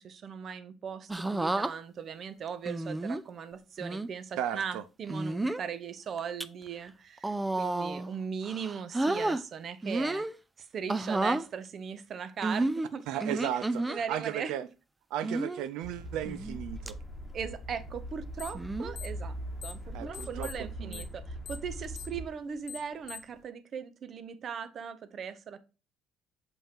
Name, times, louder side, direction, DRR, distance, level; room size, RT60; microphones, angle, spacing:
voice 1, 0.0-10.3 10.6-13.6 13.9-14.5 17.3-19.3 19.6-25.6, right 7 dB, 40° right, 0.7 m, -39 dB
sound 1, 1.1-1.7 2.7-3.2 3.8-4.1 5.1-5.6 6.2-6.4 7.2-8.1 8.4-9.4 9.8-10.3 10.9-11.4 12.4-14.0 15.2-15.6 16.2-16.6 16.9-17.0 18.5-18.9 20.0-20.3, right 2 dB, 10° right, 0.3 m, -31 dB
voice 2, 4.4-4.8 13.1-14.6 15.1-17.0 19.9-21.0, right 11 dB, 85° right, 0.5 m, -35 dB
sound 2, 15.8-22.2, equal, 10° left, 1.3 m, -41 dB
sound 3, 18.4-18.7 18.9-19.9 20.1-23.4, left 9 dB, 50° left, 0.6 m, -44 dB
7.3 x 5.4 x 2.8 m
cardioid pair, 160°, 0 cm